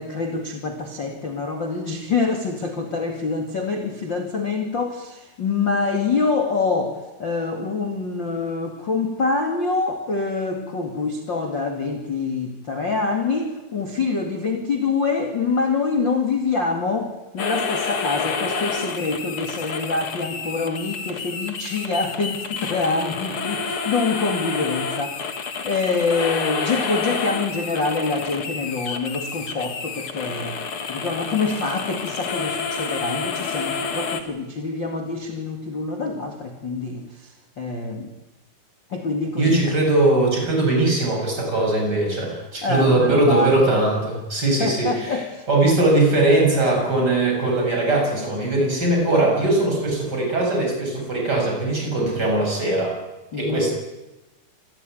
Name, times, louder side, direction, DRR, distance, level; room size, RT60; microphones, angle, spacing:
voice 1, 0.0-25.4 25.6-38.1 38.9-39.6 42.6-43.6 44.6-45.5 45.8-46.0 53.3-53.7, left 4 dB, 35° left, 3 dB, 2.1 m, -25 dB
sound 1, 17.4-34.2, left 5 dB, 80° left, 1.2 m, -29 dB
voice 2, 39.4-45.1 45.5-53.0 53.4-53.7, right 2 dB, 20° right, 0 dB, 7.9 m, -20 dB
27.0 x 16.0 x 9.4 m, 1.1 s
omnidirectional pair, 5.6 m